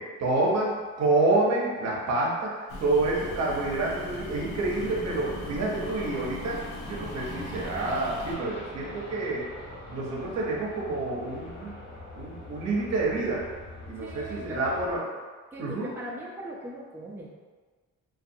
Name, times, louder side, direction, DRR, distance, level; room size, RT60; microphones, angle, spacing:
voice 1, 0.0-9.4 9.9-11.7 12.2-13.5 13.9-15.0 15.6-15.9, right 2 dB, 60° right, -3 dB, 0.7 m, -28 dB
sound 1, 2.7-8.3, left 1 dB, 90° left, 0.5 m, -40 dB
sound 2, 2.9-15.0, left 1 dB, 60° left, 0.9 m, -43 dB
voice 2, 14.0-15.0 15.5-17.3, right 1 dB, 5° right, -4 dB, 0.4 m, -39 dB
2.4 x 2.3 x 2.6 m, 1.5 s
cardioid pair, 90°, 30 cm